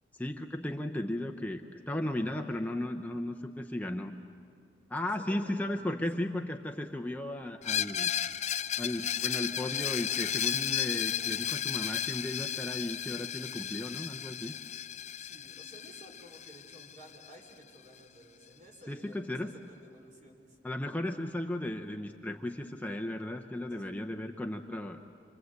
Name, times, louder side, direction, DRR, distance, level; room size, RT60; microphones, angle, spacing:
voice 1, 0.1-4.1 4.9-8.1 8.8-14.6 18.9-19.5 20.6-25.0, left 1 dB, 10° left, 3 dB, 0.8 m, -35 dB
voice 2, 5.0-5.7 6.1-6.3 15.2-20.6 23.7-23.9, right 1 dB, 45° right, 1 dB, 4.5 m, -54 dB
Screech, 7.6-17.3, left 10 dB, 40° left, 0.6 m, -34 dB
28.0 x 24.0 x 8.1 m, 2.4 s
head